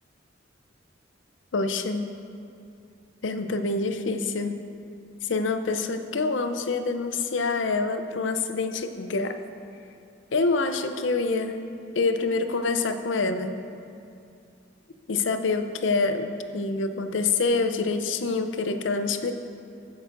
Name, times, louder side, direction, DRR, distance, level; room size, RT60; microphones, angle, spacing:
voice 1, 1.5-2.1 3.2-4.6 5.2-9.4 10.3-11.6 12.0-13.5 15.1-16.3 16.5-19.3, left 3 dB, 70° left, 8 dB, 0.6 m, -26 dB
15.0 x 9.0 x 2.6 m, 2.5 s
head